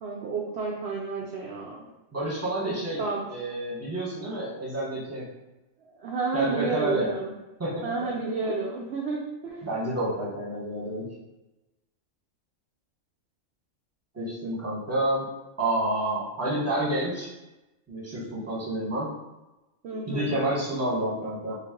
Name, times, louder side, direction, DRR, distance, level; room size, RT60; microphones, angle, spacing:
voice 1, 0.0-1.9 2.6-3.2 5.9-7.3 7.8-9.7 19.8-20.4, right 4 dB, 65° right, -2 dB, 0.7 m, -31 dB
voice 2, 2.1-3.0 3.3-5.3 6.3-7.1 7.6-8.1 8.4-8.9 9.6-11.1 14.1-15.3 15.6-17.3 17.9-19.1 20.1-21.6, right 1 dB, 10° right, -6 dB, 0.9 m, -29 dB
3.2 x 2.4 x 3.6 m, 1.0 s
omnidirectional pair, 1.4 m